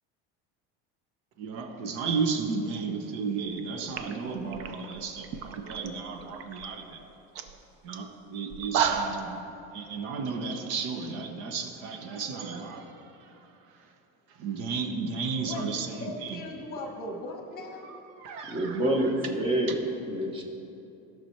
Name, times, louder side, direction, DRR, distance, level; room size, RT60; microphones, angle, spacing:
voice 1, 1.4-7.1 7.8-9.4 9.7-13.5 13.7-13.8 14.3-16.4 17.8-18.8 19.7-19.8, right 5 dB, 70° right, 6 dB, 1.0 m, -34 dB
sound 1, 3.5-3.6 3.9-5.9 6.2-6.7 7.0-7.1 7.3-7.5 7.9-8.0 8.5-9.3, right 7 dB, 50° right, 0.6 m, -31 dB
voice 2, 15.5-17.9, left 2 dB, 30° left, 2 dB, 1.1 m, -39 dB
voice 3, 18.5-19.8 20.1-20.4, right 1 dB, 15° right, 1 dB, 0.9 m, -27 dB
14.5 x 6.1 x 4.5 m, 2.8 s
cardioid pair, 175°, 30 cm